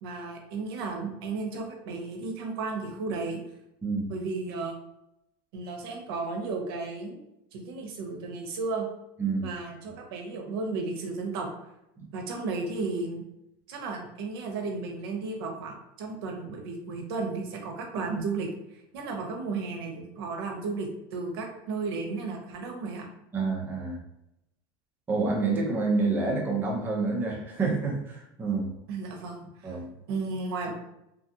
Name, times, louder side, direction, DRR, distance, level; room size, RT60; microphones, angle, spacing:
voice 1, 0.0-3.4 4.1-4.8 5.5-7.2 7.5-8.8 9.4-11.5 12.1-13.2 13.7-18.5 18.9-23.1 28.9-29.8 30.1-30.7, right 3 dB, 80° right, 2 dB, 0.7 m, -34 dB
voice 2, 23.3-24.0 25.1-28.7 29.6-29.9, right 3 dB, 15° right, -2 dB, 0.6 m, -28 dB
2.8 x 2.4 x 2.7 m, 0.85 s
supercardioid pair, 150°, 12 cm